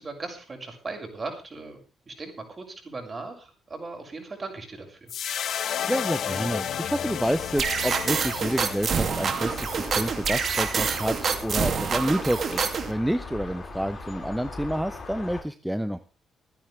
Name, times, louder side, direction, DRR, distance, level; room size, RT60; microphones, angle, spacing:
voice 1, 0.0-1.8 2.1-5.1, right 3 dB, 30° right, 4 dB, 6.1 m, -38 dB
sound 1, 5.1-11.5, left 9 dB, 65° left, 1.1 m, -33 dB
voice 2, 5.9-16.0, equal, 5° right, 10 dB, 0.9 m, -29 dB
sound 2, 7.6-12.9, right 6 dB, 55° right, 2.5 m, -27 dB
sound 3, 9.4-15.4, left 3 dB, 35° left, 5.2 m, -39 dB
26.5 x 9.8 x 3.4 m, 0.32 s
cardioid pair, 90°, 0 cm